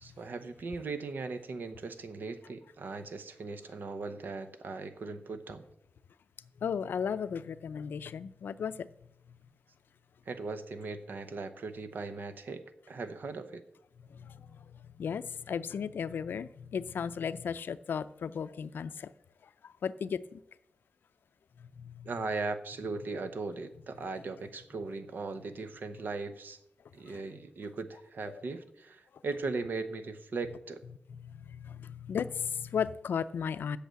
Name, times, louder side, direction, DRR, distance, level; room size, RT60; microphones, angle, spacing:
voice 1, 0.0-5.6 10.3-13.6 22.0-26.6 26.9-30.8, right 3 dB, 70° right, 0.9 m, -38 dB
voice 2, 6.6-8.9 14.1-19.1 19.6-20.4 21.6-22.1 31.2-33.8, left 7 dB, 85° left, 0.4 m, -35 dB
8.2 x 6.5 x 7.5 m
wide cardioid pair, 115°, 3 cm